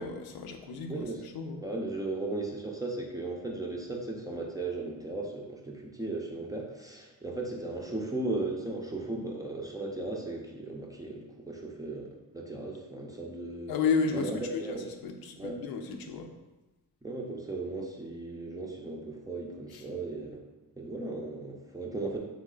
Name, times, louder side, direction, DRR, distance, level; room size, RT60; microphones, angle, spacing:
voice 1, 0.0-1.7 13.7-16.3 19.7-19.8, left 5 dB, 90° left, 4 dB, 0.6 m, -33 dB
voice 2, 1.6-13.7 14.1-14.8 15.4-15.6 17.0-20.4 20.8-22.2, right 2 dB, 10° right, -1 dB, 0.4 m, -36 dB
3.6 x 3.1 x 3.7 m, 1.1 s
wide cardioid pair, 155°, 35 cm